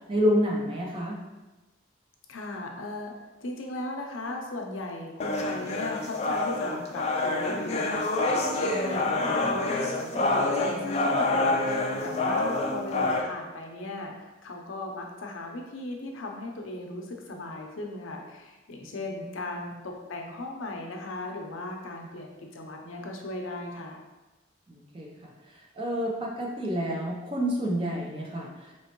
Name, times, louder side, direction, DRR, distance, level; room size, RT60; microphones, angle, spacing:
voice 1, 0.1-1.2 18.8-18.9 19.2-19.6 24.7-28.7, equal, 25° right, -2 dB, 0.6 m, -29 dB
voice 2, 2.3-3.1 3.4-24.0, left 2 dB, 85° left, 2 dB, 0.6 m, -37 dB
sound 1, 5.2-13.2, left 2 dB, 30° left, 0.4 m, -27 dB
4.4 x 3.0 x 2.9 m, 1.1 s
head